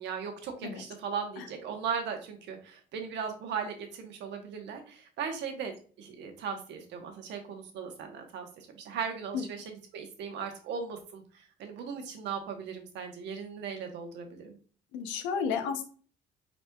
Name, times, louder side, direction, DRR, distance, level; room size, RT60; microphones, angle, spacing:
voice 1, 0.0-14.6, right 6 dB, 75° right, 4 dB, 1.0 m, -38 dB
voice 2, 14.9-15.8, left 6 dB, 80° left, 7 dB, 0.6 m, -32 dB
4.3 x 4.1 x 2.2 m, 0.42 s
hypercardioid pair, 55°, 19 cm